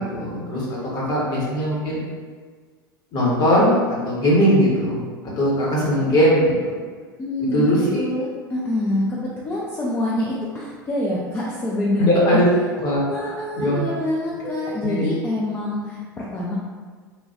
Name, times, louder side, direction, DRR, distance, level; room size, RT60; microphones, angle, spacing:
voice 1, 0.0-2.0 3.1-3.7 4.0-6.7 7.5-8.0 12.0-12.4 12.8-13.8 14.4-14.6 14.8-15.1, equal, 35° left, -5 dB, 1.0 m, -20 dB
voice 2, 7.2-12.4 13.1-16.5, left 1 dB, 15° left, -6 dB, 0.4 m, -26 dB
3.1 x 2.2 x 2.7 m, 1.5 s
figure-of-eight pair, 80°, 12 cm